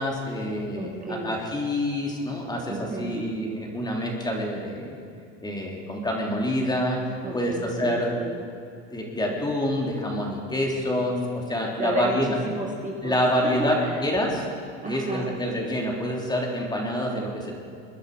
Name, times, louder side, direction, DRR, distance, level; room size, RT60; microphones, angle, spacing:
voice 1, 0.0-5.0 5.4-7.0 7.3-8.1 8.9-12.3 13.0-14.5 14.8-17.5, left 1 dB, 15° left, -1 dB, 3.1 m, -27 dB
voice 2, 0.8-1.4 2.7-3.2 7.2-8.5 11.8-12.2 12.4-13.2 13.4-13.5 13.8-14.0 14.8-15.3, right 2 dB, 25° right, -1 dB, 2.3 m, -33 dB
21.5 x 10.5 x 4.9 m, 2.4 s
supercardioid pair, 95°, 31 cm